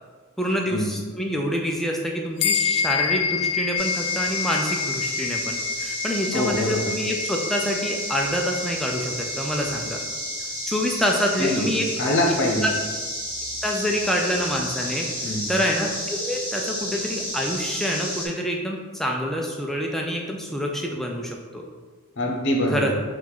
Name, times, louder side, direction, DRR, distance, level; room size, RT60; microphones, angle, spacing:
voice 1, 0.4-10.0 10.7-11.8 12.6-12.7 13.6-15.1 15.5-21.6 22.7-22.9, equal, ahead, 0 dB, 0.4 m, -26 dB
sound 1, 2.4-12.1, left 6 dB, 85° left, 0.3 m, -29 dB
sound 2, 3.8-18.3, equal, 20° right, 1.4 m, -32 dB
voice 2, 6.3-6.9 11.4-11.7 12.0-12.7 15.2-15.6 22.2-22.9, left 1 dB, 55° left, -1 dB, 0.7 m, -24 dB
4.4 x 2.4 x 4.0 m, 1.5 s
head